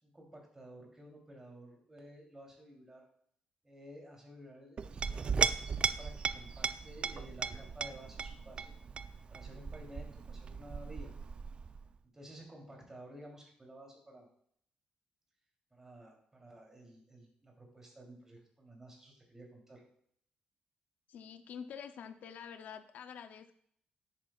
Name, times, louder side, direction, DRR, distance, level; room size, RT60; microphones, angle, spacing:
voice 1, 0.0-3.0 3.6-5.5 5.8-8.7 9.3-11.1 12.1-14.3 15.7-19.8, right 1 dB, 20° right, -1 dB, 3.1 m, -53 dB
Chink clink, 4.8-11.9, right 5 dB, 40° right, 0.4 m, -37 dB
voice 2, 21.1-23.5, left 7 dB, 75° left, 10 dB, 0.6 m, -47 dB
10.5 x 8.8 x 2.4 m, 0.65 s
cardioid pair, 120°, 3 cm